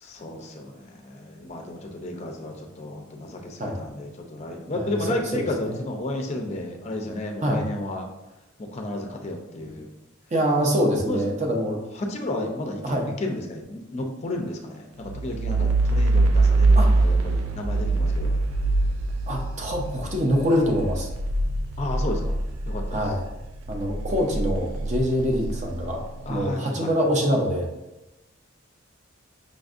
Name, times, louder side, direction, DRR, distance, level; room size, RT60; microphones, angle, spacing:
voice 1, 0.0-8.1 8.6-9.9 11.1-11.2 12.0-18.3 21.8-22.4 22.7-23.0 26.3-27.1, left 1 dB, 30° left, 3 dB, 0.4 m, -32 dB
voice 2, 4.7-5.8 7.4-7.7 10.3-11.8 12.3-12.4 12.8-13.1 16.8-16.9 19.3-21.1 22.9-23.2 23.7-26.0 26.3-27.7, equal, 35° right, 0 dB, 0.5 m, -25 dB
sound 1, 15.0-23.3 23.7-26.3, right 2 dB, 85° right, 0.3 m, -23 dB
5.1 x 2.5 x 2.4 m, 0.98 s
head